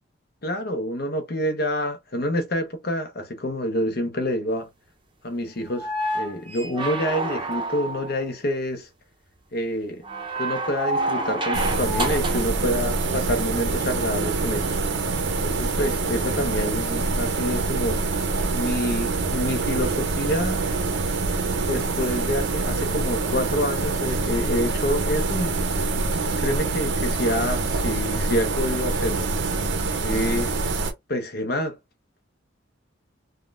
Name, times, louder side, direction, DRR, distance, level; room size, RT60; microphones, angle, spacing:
voice 1, 0.4-4.7 5.2-5.9 6.1-8.9 9.5-10.0 10.4-14.8 15.4-18.0 18.5-20.6 21.6-25.7 26.3-29.3 30.0-30.5 31.1-31.8, left 1 dB, 50° left, 0.8 m, -27 dB
sound 1, 5.7-8.2 10.0-12.5 14.2-14.3, right 2 dB, 25° right, 0.6 m, -28 dB
sound 2, 11.5-30.9, right 3 dB, 65° right, 0.6 m, -25 dB
3.5 x 2.2 x 2.4 m
head